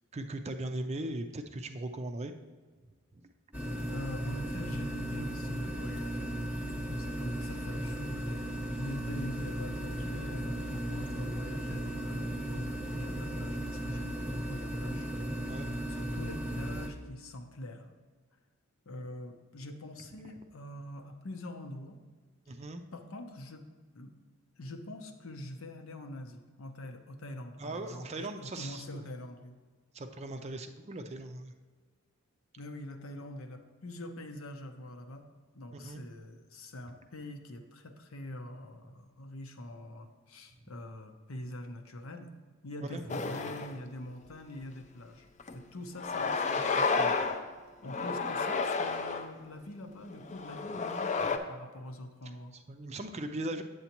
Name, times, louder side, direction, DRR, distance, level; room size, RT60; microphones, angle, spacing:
voice 1, 0.1-2.3 3.1-3.3 15.5-15.7 22.5-22.8 27.6-29.0 29.9-31.5 35.7-36.0 42.9-43.0 52.5-53.6, right 1 dB, 30° right, 6 dB, 0.4 m, -39 dB
sound 1, 3.5-16.9, equal, 10° right, 0.9 m, -36 dB
voice 2, 3.9-6.4 6.6-14.2 14.5-15.1 15.9-17.9 18.9-22.0 22.5-22.6 22.9-23.7 23.9-24.1 24.6-29.6 32.6-35.3 35.5-42.3 42.6-47.2 47.8-52.6, left 1 dB, 75° left, 5 dB, 0.8 m, -44 dB
sound 2, 43.1-43.8 44.3-44.4 45.4-45.5 46.0-47.4 47.9-49.3 50.1-51.4, left 4 dB, 35° left, 0.4 m, -31 dB
8.2 x 7.9 x 2.9 m, 1.4 s
head